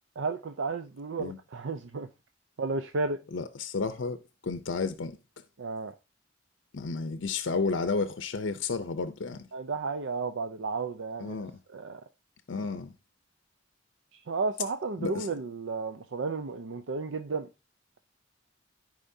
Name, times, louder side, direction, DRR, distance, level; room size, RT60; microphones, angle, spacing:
voice 1, 0.2-2.1 2.6-3.2 5.6-5.9 9.5-11.4 11.7-12.0 14.1-17.5, right 4 dB, 80° right, 0.5 m, -33 dB
voice 2, 3.3-5.2 6.7-9.5 11.2-11.6 12.5-12.9 15.0-15.3, left 4 dB, 80° left, 0.6 m, -32 dB
13.5 x 5.0 x 2.7 m
head